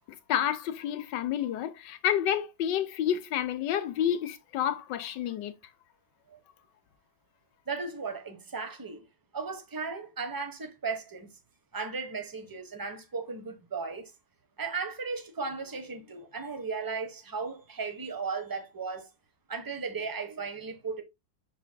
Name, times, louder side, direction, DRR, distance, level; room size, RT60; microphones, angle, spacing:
voice 1, 0.3-5.5, left 10 dB, 70° left, 1.4 m, -29 dB
voice 2, 7.7-9.1 9.3-11.3 11.7-14.1 14.6-19.1 19.5-21.0, right 4 dB, 15° right, 0.7 m, -36 dB
6.7 x 6.3 x 2.2 m
omnidirectional pair, 2.1 m